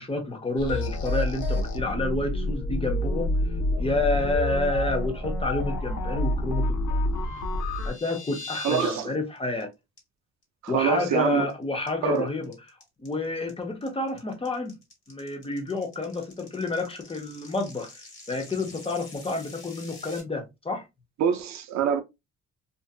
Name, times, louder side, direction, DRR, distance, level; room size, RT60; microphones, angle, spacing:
voice 1, 0.0-3.3 3.8-7.1 7.9-9.7 10.7-12.5 13.0-14.8 15.1-17.9 18.3-20.9, left 2 dB, 20° left, 0.7 m, -29 dB
sound 1, 0.6-7.9, left 1 dB, 75° left, 0.7 m, -28 dB
sound 2, 7.4-9.0 9.4-9.6 10.0-10.1 10.4-10.7 11.0-11.5 11.9-20.2, left 3 dB, 40° left, 1.4 m, -44 dB
voice 2, 8.6-9.1 10.6-11.4 12.0-12.3 21.2-22.0, right 7 dB, 65° right, 0.5 m, -25 dB
2.6 x 2.5 x 2.3 m
cardioid pair, 90°, 30 cm